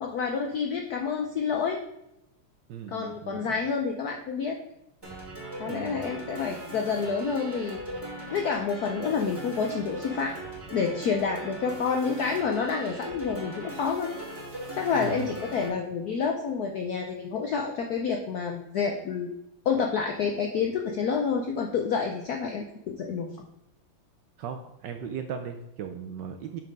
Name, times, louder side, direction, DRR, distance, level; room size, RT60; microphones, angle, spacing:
voice 1, 0.0-1.8 2.9-4.6 5.6-7.8 8.3-10.3 10.7-14.1 14.7-19.3 19.6-23.3, left 5 dB, 75° left, 2 dB, 0.9 m, -28 dB
voice 2, 2.7-3.6 5.6-6.1 14.9-15.4 24.4-26.6, right 7 dB, 75° right, 6 dB, 1.0 m, -37 dB
sound 1, 5.0-15.7, right 1 dB, 10° right, 2.0 m, -39 dB
6.2 x 5.9 x 5.2 m, 0.85 s
omnidirectional pair, 2.4 m